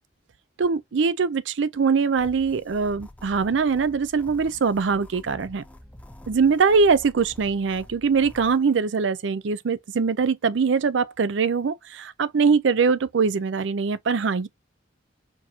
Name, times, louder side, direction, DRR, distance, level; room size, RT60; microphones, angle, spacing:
voice 1, 0.6-5.6 6.3-14.5, right 5 dB, 70° right, 0.5 m, -22 dB
sound 1, 2.1-8.6, left 1 dB, 10° left, 0.4 m, -47 dB
4.5 x 2.8 x 2.7 m
head